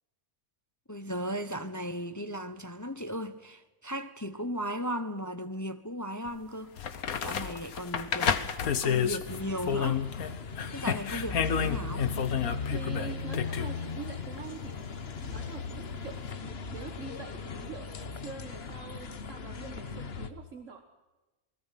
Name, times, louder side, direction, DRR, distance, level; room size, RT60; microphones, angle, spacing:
voice 1, 0.9-6.7 7.2-8.5 8.8-10.0 10.7-12.1, equal, 15° left, 0.7 m, -36 dB
sound 1, 6.3-6.4 6.8-10.3 10.6-13.7 16.3-16.4, left 7 dB, 70° left, 1.6 m, -30 dB
sound 2, 9.2-20.3, left 5 dB, 45° left, 1.3 m, -38 dB
voice 2, 12.7-20.8, right 6 dB, 55° right, 1.8 m, -45 dB
28.0 x 20.0 x 5.9 m
omnidirectional pair, 1.6 m